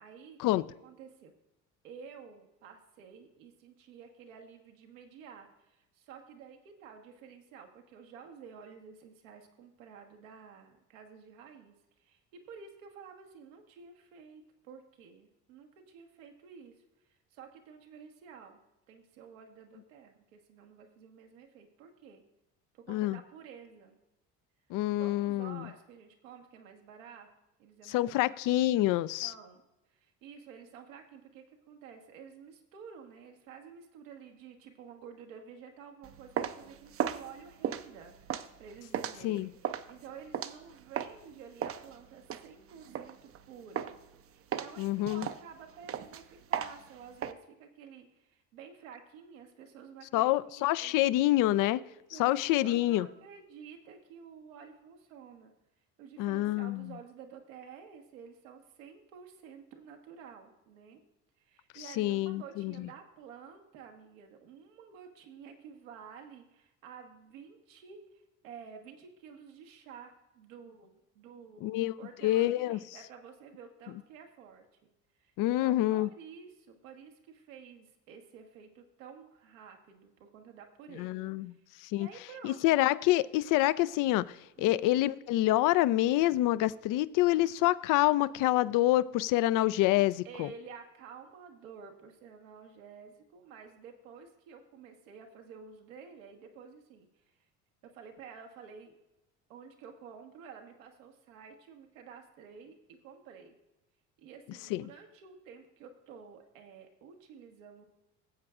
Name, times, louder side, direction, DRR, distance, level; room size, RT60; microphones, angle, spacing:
voice 1, 0.0-0.4 0.8-1.3 1.8-16.8 17.0-18.6 18.9-22.2 22.7-24.0 24.9-27.3 27.6-28.2 29.2-29.6 29.9-44.0 44.3-50.9 51.6-55.5 56.0-61.0 61.4-74.9 75.2-82.9 84.6-84.8 90.2-97.2 97.8-98.9 99.5-103.5 104.2-107.9, right 6 dB, 85° right, 1.3 m, -51 dB
voice 2, 22.9-23.2 24.7-25.7 27.9-29.3 39.2-39.5 44.8-45.3 50.1-51.8 52.2-53.1 56.2-56.9 62.0-62.9 71.6-71.9 72.2-72.8 75.4-76.1 81.0-81.5 81.8-82.1 82.4-90.5 104.7-104.8, left 15 dB, 55° left, 0.4 m, -27 dB
sound 1, 36.0-41.2 41.6-43.4 43.8-44.1 44.5-47.3, right 9 dB, 35° right, 0.5 m, -36 dB
15.5 x 7.6 x 2.4 m
hypercardioid pair, 75°, 39 cm